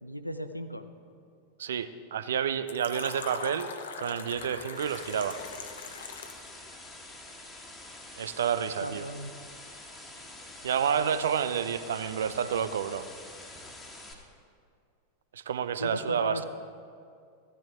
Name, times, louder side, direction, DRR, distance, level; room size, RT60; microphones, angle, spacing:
voice 1, 0.0-0.9 8.8-9.3 12.2-12.3 15.8-16.5, equal, 90° left, 9 dB, 0.5 m, -35 dB
voice 2, 1.6-3.7 4.0-5.4 8.2-9.1 10.6-13.0 15.3-16.5, right 8 dB, 65° right, 13 dB, 0.5 m, -29 dB
Fill (with liquid), 2.7-6.5, left 5 dB, 65° left, 0.8 m, -41 dB
sound 1, 4.3-14.1, left 2 dB, 15° left, 1.5 m, -47 dB
15.0 x 10.0 x 3.7 m, 2.3 s
figure-of-eight pair, 90°, 0 cm